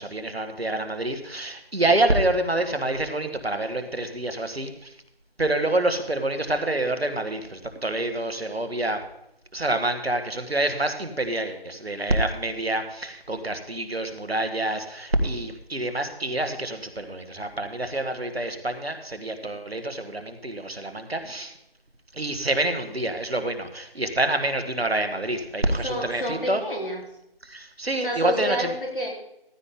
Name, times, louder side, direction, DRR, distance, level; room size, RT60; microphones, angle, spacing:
voice 1, 0.0-4.9 5.4-9.0 9.5-21.5 22.1-26.6 27.4-28.7, right 2 dB, 80° right, 8 dB, 1.6 m, -27 dB
voice 2, 25.8-27.0 28.0-29.1, equal, 60° left, -1 dB, 3.7 m, -29 dB
15.0 x 9.6 x 3.7 m, 0.83 s
figure-of-eight pair, 175°, 30 cm